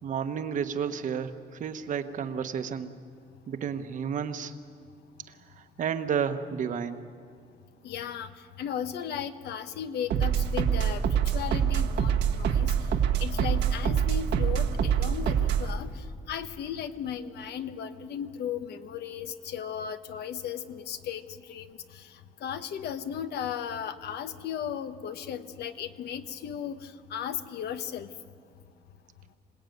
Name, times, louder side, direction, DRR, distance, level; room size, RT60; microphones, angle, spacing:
voice 1, 0.0-2.9 3.5-4.5 5.3-7.1, right 7 dB, 50° right, 9 dB, 1.1 m, -32 dB
voice 2, 7.8-8.3 8.6-11.0 11.3-12.7 13.2-28.1, left 8 dB, 70° left, 10 dB, 1.2 m, -36 dB
sound 1, 10.1-15.7, right 8 dB, 85° right, 1.6 m, -25 dB
26.5 x 19.0 x 9.3 m, 2.2 s
cardioid pair, 165°, 17 cm